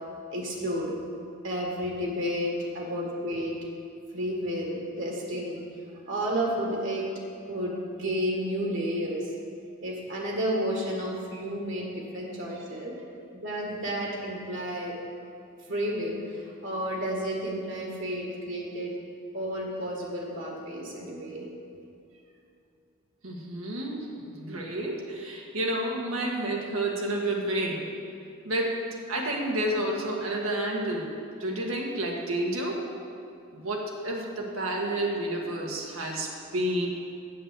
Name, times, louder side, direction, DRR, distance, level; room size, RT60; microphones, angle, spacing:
voice 1, 0.3-0.9 1.4-3.6 4.1-5.6 6.1-7.1 7.5-9.3 9.8-12.9 13.3-14.9 15.7-18.9 19.3-21.5, equal, 65° right, -1 dB, 1.9 m, -31 dB
voice 2, 23.2-27.9 28.4-28.7 29.1-31.1 31.4-32.8 33.5-36.9, right 1 dB, 85° right, -1 dB, 1.7 m, -30 dB
7.7 x 6.8 x 8.1 m, 2.6 s
head